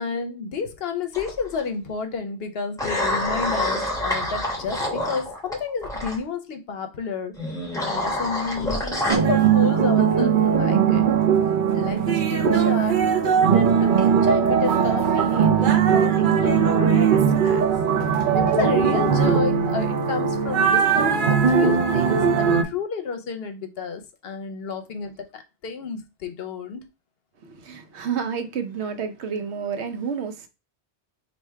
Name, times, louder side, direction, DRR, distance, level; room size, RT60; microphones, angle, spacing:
voice 1, 0.0-7.4 7.8-11.1 11.7-17.7 18.3-26.9, left 5 dB, 70° left, 0.8 m, -31 dB
sound 1, 1.1-1.6 2.8-6.2 7.4-9.2, left 1 dB, 5° left, 1.0 m, -27 dB
sound 2, 9.1-22.6, right 7 dB, 55° right, 0.6 m, -19 dB
voice 2, 27.4-30.5, right 6 dB, 85° right, 1.0 m, -30 dB
3.3 x 2.7 x 4.5 m
omnidirectional pair, 1.1 m